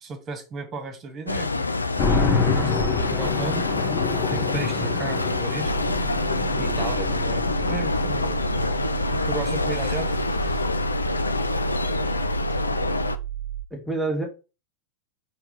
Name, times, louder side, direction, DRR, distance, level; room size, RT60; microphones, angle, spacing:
voice 1, 0.0-3.6 4.3-5.7 6.6-10.3, right 3 dB, 25° right, 2.0 m, -35 dB
sound 1, 1.3-13.2, left 3 dB, 80° left, 0.5 m, -26 dB
sound 2, 2.0-10.7, left 4 dB, 35° left, 1.8 m, -28 dB
sound 3, 5.7-13.7, right 12 dB, 70° right, 0.4 m, -32 dB
voice 2, 13.7-14.3, right 2 dB, ahead, 2.2 m, -30 dB
5.0 x 4.6 x 5.5 m
figure-of-eight pair, 90°, 0 cm